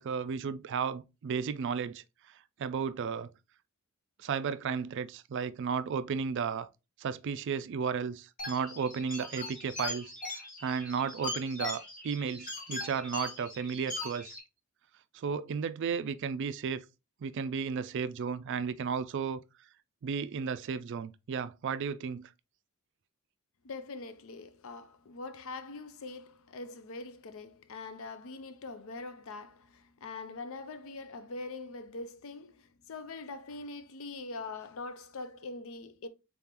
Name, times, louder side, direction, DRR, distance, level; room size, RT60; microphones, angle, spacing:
voice 1, 0.0-2.0 2.6-3.3 4.2-6.7 7.0-10.1 10.6-14.4 15.1-16.8 17.2-19.4 20.0-22.3, right 6 dB, 55° right, 0.3 m, -34 dB
sound 1, 8.4-14.4, left 2 dB, 40° left, 1.6 m, -40 dB
voice 2, 23.6-36.1, left 3 dB, 65° left, 0.5 m, -43 dB
3.8 x 3.7 x 2.8 m
head